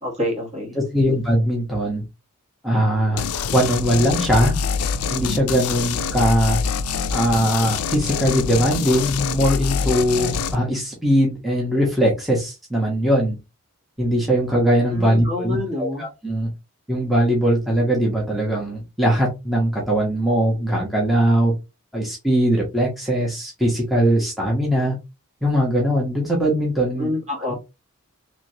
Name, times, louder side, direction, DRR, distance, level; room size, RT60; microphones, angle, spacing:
voice 1, 0.0-0.8 14.9-16.0 27.0-27.5, left 1 dB, 30° right, 0 dB, 1.4 m, -27 dB
voice 2, 0.7-2.0 2.6-3.3 3.5-4.5 5.1-6.6 7.1-13.4 14.0-16.5 16.9-21.5 21.9-25.0 25.4-27.1, equal, ahead, -3 dB, 0.9 m, -20 dB
sound 1, 3.2-10.6, left 6 dB, 90° left, 0.4 m, -25 dB
3.2 x 3.1 x 2.7 m, 0.25 s
head